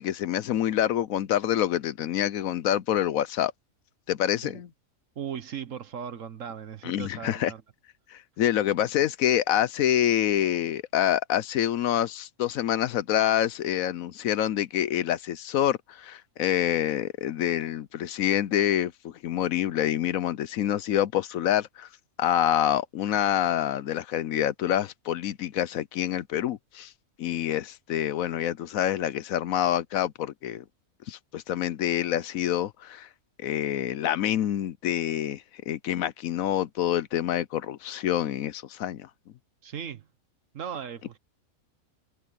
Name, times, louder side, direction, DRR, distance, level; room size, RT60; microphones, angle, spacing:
voice 1, 0.0-3.5 4.1-4.7 6.8-7.5 8.1-21.9 22.2-26.9 27.2-30.6 31.1-33.1 33.4-39.1, left 11 dB, 70° left, 1.0 m, -27 dB
voice 2, 5.2-7.6 39.6-40.1 40.5-41.2, right 8 dB, 60° right, 1.4 m, -37 dB
omnidirectional pair, 1.5 m